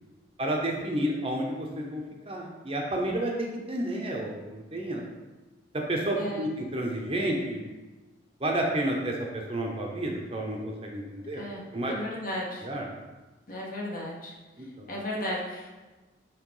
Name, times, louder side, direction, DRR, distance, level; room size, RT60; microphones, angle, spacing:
voice 1, 0.4-5.0 5.9-7.6 8.4-11.4 11.7-11.9 12.6-12.9 14.8-14.9, right 1 dB, 30° right, 0 dB, 0.9 m, -30 dB
voice 2, 6.2-6.5 11.4-12.7 13.5-14.3 14.9-15.7, left 1 dB, 45° left, -4 dB, 1.7 m, -35 dB
9.1 x 3.1 x 4.9 m, 1.2 s
head